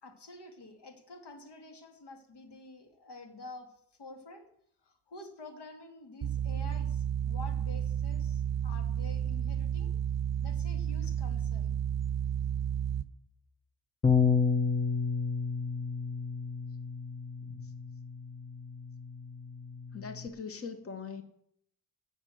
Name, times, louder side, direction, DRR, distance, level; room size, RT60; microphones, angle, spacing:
voice 1, 0.0-4.5 4.8-9.9 10.4-11.8, left 2 dB, 80° left, 5 dB, 2.4 m, -49 dB
sound 1, 6.2-13.0, right 9 dB, 40° right, 0.9 m, -32 dB
Bass guitar, 14.0-20.3, left 5 dB, 15° left, 0.5 m, -31 dB
voice 2, 19.9-21.2, left 5 dB, 35° left, 9 dB, 1.1 m, -41 dB
16.5 x 6.6 x 7.8 m, 0.73 s
wide cardioid pair, 150°, 40 cm